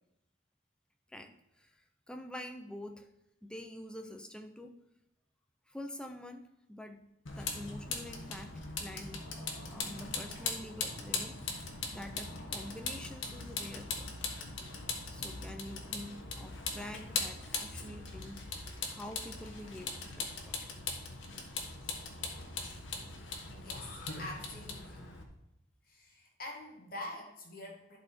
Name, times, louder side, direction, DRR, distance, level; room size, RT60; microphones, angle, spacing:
voice 1, 1.1-3.1 3.4-4.7 5.7-6.4 6.7-7.0 7.4-9.2 9.7-11.7 11.9-14.1 15.1-20.6, left 1 dB, 5° left, 5 dB, 0.6 m, -47 dB
Vehicle, 7.3-25.2, left 4 dB, 75° left, 1.3 m, -40 dB
voice 2, 23.6-25.1 25.8-28.0, left 1 dB, 45° left, -1 dB, 1.8 m, -46 dB
11.0 x 4.2 x 4.5 m, 0.86 s
head